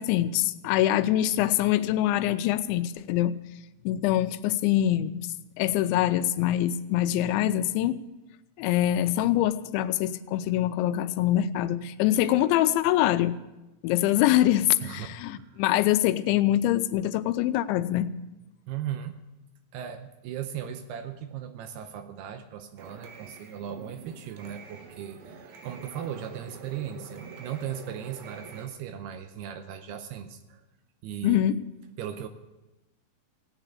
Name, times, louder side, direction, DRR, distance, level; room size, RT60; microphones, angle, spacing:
voice 1, 0.0-3.4 3.9-5.3 5.6-8.0 8.6-13.4 13.8-18.1 31.2-31.6, left 13 dB, 90° left, 12 dB, 3.0 m, -24 dB
voice 2, 14.8-15.6 18.7-19.1 19.7-30.6 31.0-31.4 32.0-32.3, right 9 dB, 80° right, 8 dB, 2.5 m, -37 dB
sound 1, 22.8-28.7, right 5 dB, 60° right, 2.9 m, -46 dB
16.5 x 9.1 x 8.2 m, 1.0 s
omnidirectional pair, 5.2 m